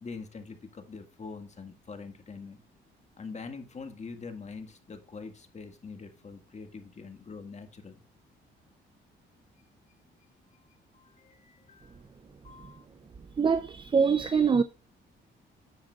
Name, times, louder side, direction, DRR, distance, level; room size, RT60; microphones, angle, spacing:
voice 1, 0.0-2.6 3.2-8.0 10.9-12.0 12.4-12.9, left 4 dB, 35° left, 1.9 m, -44 dB
voice 2, 13.4-14.6, right 6 dB, 25° right, 0.5 m, -24 dB
9.8 x 6.5 x 2.4 m
cardioid pair, 90°, 20 cm